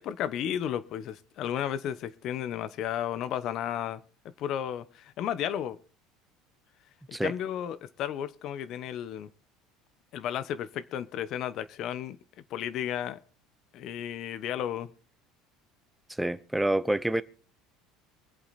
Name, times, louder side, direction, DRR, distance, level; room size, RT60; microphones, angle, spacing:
voice 1, 0.0-4.0 4.4-5.8 7.2-9.3 10.1-12.2 12.5-13.2 13.7-14.9, left 10 dB, 55° left, 1.0 m, -33 dB
voice 2, 16.2-17.2, right 1 dB, 5° right, 0.8 m, -27 dB
24.0 x 8.2 x 4.2 m
supercardioid pair, 100°, 0 cm